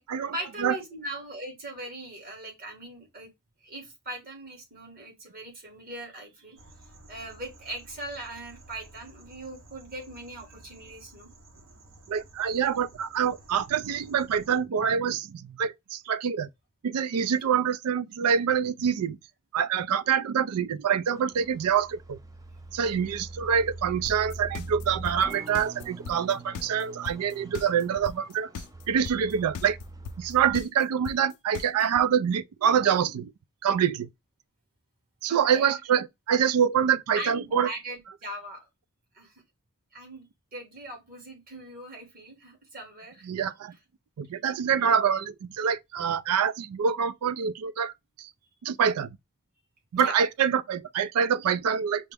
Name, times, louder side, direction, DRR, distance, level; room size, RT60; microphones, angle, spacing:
voice 1, 0.0-3.3 3.6-6.6 7.1-11.3 17.4-17.5 24.5-24.6 35.3-35.8 37.1-38.7 39.1-39.3 39.9-43.3 50.0-50.2, right 1 dB, 45° right, 1.6 m, -40 dB
sound 1, 6.6-14.6, right 2 dB, 65° right, 1.1 m, -53 dB
voice 2, 12.1-16.5 16.8-19.2 19.5-22.2 22.7-28.5 28.9-29.8 30.2-33.3 33.6-34.1 35.2-37.7 43.2-43.7 44.2-47.9 48.2-48.3 48.6-49.2 49.9-52.1, right 7 dB, 90° right, 0.4 m, -26 dB
sound 2, 21.1-30.5, right 2 dB, 15° right, 0.4 m, -43 dB
sound 3, 24.1-32.0, left 6 dB, 80° left, 0.4 m, -38 dB
5.6 x 2.0 x 3.4 m
head